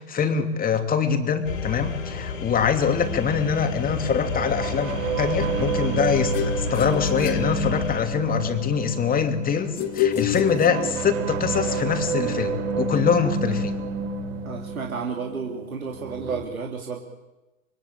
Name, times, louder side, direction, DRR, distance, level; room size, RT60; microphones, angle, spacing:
voice 1, 0.0-13.7, left 7 dB, 20° left, 6 dB, 2.9 m, -24 dB
sound 1, 1.4-8.0, left 7 dB, 70° left, 4.6 m, -32 dB
sound 2, 3.0-16.4, right 4 dB, 50° right, 3.7 m, -30 dB
sound 3, 6.3-8.3 9.8-11.3, left 10 dB, 35° left, 2.2 m, -28 dB
voice 2, 14.4-17.0, right 5 dB, 80° right, 1 dB, 3.2 m, -32 dB
26.0 x 23.0 x 8.9 m, 1.0 s
hypercardioid pair, 105°, 42 cm